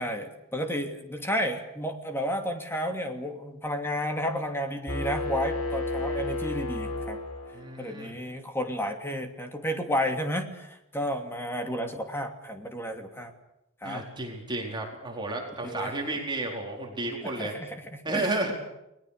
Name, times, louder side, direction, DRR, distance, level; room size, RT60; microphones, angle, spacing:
voice 1, 0.0-7.2 7.8-13.3 13.8-14.0 15.6-15.9 17.2-18.3, equal, 10° left, 4 dB, 2.8 m, -32 dB
sound 1, 4.9-7.8, left 2 dB, 85° left, 6.4 m, -32 dB
voice 2, 7.5-8.2 13.8-17.5 18.0-18.5, right 2 dB, 20° right, 0 dB, 4.5 m, -32 dB
30.0 x 20.5 x 6.8 m, 0.86 s
head